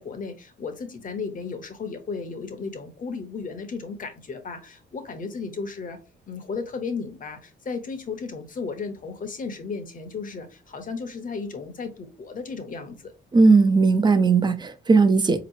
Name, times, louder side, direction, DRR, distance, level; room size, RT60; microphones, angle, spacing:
voice 1, 0.0-6.0 6.3-13.1, left 4 dB, 45° left, 1.0 m, -34 dB
voice 2, 13.3-15.4, right 4 dB, 20° right, 0.6 m, -17 dB
4.1 x 3.0 x 2.8 m
cardioid pair, 90°, 20 cm